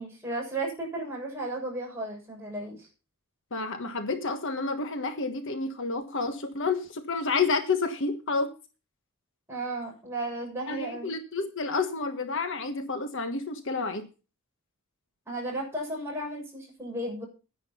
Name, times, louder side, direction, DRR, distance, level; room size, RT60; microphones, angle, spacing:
voice 1, 0.0-2.9 9.5-11.1 15.3-17.2, right 2 dB, 10° right, 7.0 m, -34 dB
voice 2, 3.5-8.5 10.7-14.1, left 4 dB, 60° left, 1.4 m, -30 dB
10.5 x 10.0 x 5.6 m
head